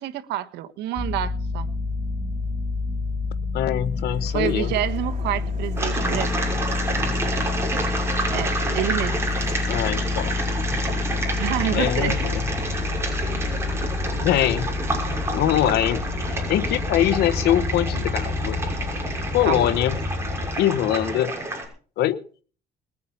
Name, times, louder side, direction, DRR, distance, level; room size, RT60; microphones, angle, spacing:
voice 1, 0.0-1.7 4.3-6.5 7.8-8.0 8.3-9.2 11.3-12.2 19.4-19.6, right 13 dB, 85° right, 1.3 m, -28 dB
sound 1, 1.0-20.6, left 4 dB, 40° left, 6.9 m, -28 dB
voice 2, 3.5-4.7 9.7-10.4 11.7-12.5 14.2-14.7 15.3-18.6 19.3-20.0 20.6-21.3 22.0-22.2, left 12 dB, 75° left, 1.1 m, -23 dB
sound 2, 4.0-21.2, right 2 dB, 45° right, 4.6 m, -37 dB
sound 3, 5.8-21.7, right 2 dB, 15° right, 6.0 m, -29 dB
21.0 x 8.6 x 5.6 m
cardioid pair, 110°, 17 cm